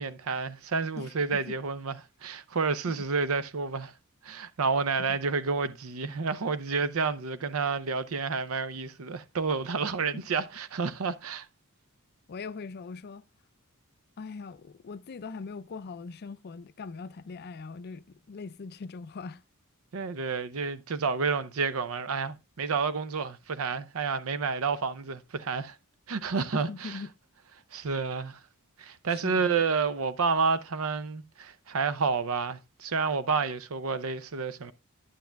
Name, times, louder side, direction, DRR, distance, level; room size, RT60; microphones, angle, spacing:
voice 1, 0.0-3.9 4.2-11.5 19.9-25.8 26.1-27.0 27.7-28.4 28.8-34.7, right 5 dB, 75° right, 0.6 m, -30 dB
voice 2, 1.0-1.6 2.9-3.1 5.0-5.2 10.1-10.2 12.3-13.3 14.2-19.4 26.5-27.1 29.1-29.5, left 4 dB, 50° left, 0.4 m, -41 dB
10.0 x 9.4 x 2.2 m
head